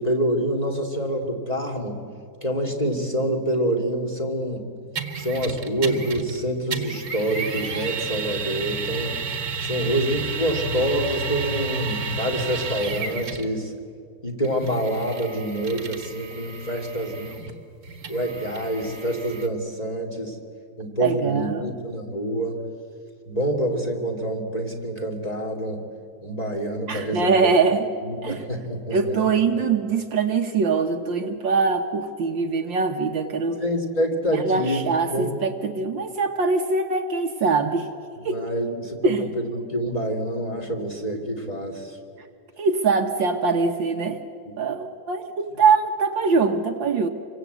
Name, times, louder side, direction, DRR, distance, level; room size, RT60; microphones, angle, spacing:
voice 1, 0.0-2.0 2.4-4.6 5.2-9.2 9.6-13.7 14.2-17.3 18.1-20.4 20.8-22.6 23.3-25.8 26.2-27.5 28.0-29.3 29.5-29.6 33.6-34.8 35.1-35.4 38.2-42.0 44.5-44.6, right 1 dB, 15° left, 1 dB, 2.8 m, -27 dB
sound 1, 5.0-6.4 6.7-13.5 14.4-19.5, right 4 dB, 45° right, 2.0 m, -31 dB
voice 2, 21.0-21.7 26.9-27.9 28.2-28.4 28.9-33.6 34.3-37.9 38.2-38.4 39.0-39.3 42.6-44.2 44.6-47.1, right 4 dB, 65° right, 5 dB, 1.9 m, -23 dB
27.5 x 24.0 x 8.2 m, 2.2 s
omnidirectional pair, 2.4 m